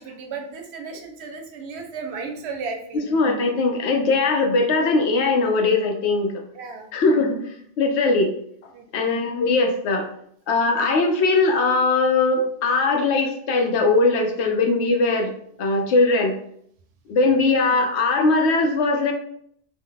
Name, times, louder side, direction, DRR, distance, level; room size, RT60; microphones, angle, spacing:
voice 1, 0.0-3.0 6.5-6.9 8.7-9.2 17.4-17.5, right 4 dB, 75° right, 4 dB, 0.8 m, -34 dB
voice 2, 2.9-6.3 6.9-8.3 8.9-10.1 10.5-15.3 15.6-16.4 17.1-19.1, left 3 dB, 85° left, 4 dB, 0.9 m, -20 dB
2.8 x 2.1 x 3.7 m, 0.67 s
omnidirectional pair, 1.1 m